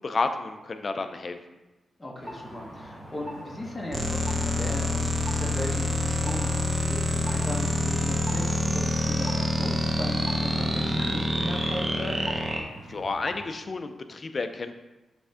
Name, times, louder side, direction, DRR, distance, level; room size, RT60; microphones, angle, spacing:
voice 1, 0.0-1.4 12.9-14.8, left 3 dB, 40° left, 8 dB, 0.5 m, -31 dB
voice 2, 2.0-12.3, left 1 dB, 15° left, -3 dB, 1.0 m, -37 dB
sound 1, 2.2-13.6, equal, 10° right, 1.7 m, -42 dB
sound 2, 3.9-12.6, equal, 25° right, 0.8 m, -27 dB
5.9 x 3.5 x 5.6 m, 1.1 s
cardioid pair, 100°, 0 cm